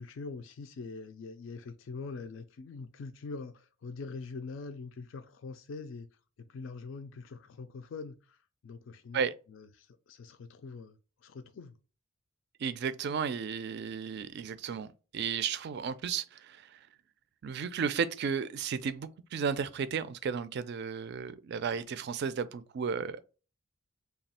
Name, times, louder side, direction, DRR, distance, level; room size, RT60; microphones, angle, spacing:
voice 1, 0.0-6.1 6.4-9.2 9.5-11.7, left 4 dB, 65° left, 0.4 m, -44 dB
voice 2, 12.6-16.7 17.4-23.2, right 6 dB, 55° right, 0.3 m, -34 dB
3.3 x 2.3 x 4.1 m
head